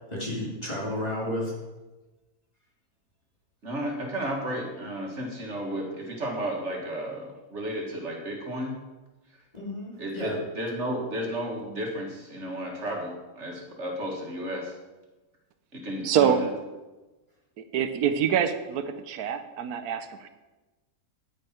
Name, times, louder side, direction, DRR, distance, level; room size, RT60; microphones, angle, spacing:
voice 1, 0.1-1.5 9.5-10.4, left 1 dB, 25° left, -4 dB, 2.7 m, -32 dB
voice 2, 3.6-8.7 10.0-14.7 15.7-16.5, right 1 dB, 50° right, 0 dB, 2.0 m, -33 dB
voice 3, 16.0-16.4 17.6-20.3, right 8 dB, 85° right, 9 dB, 1.2 m, -25 dB
9.7 x 9.2 x 4.4 m, 1.1 s
omnidirectional pair, 1.6 m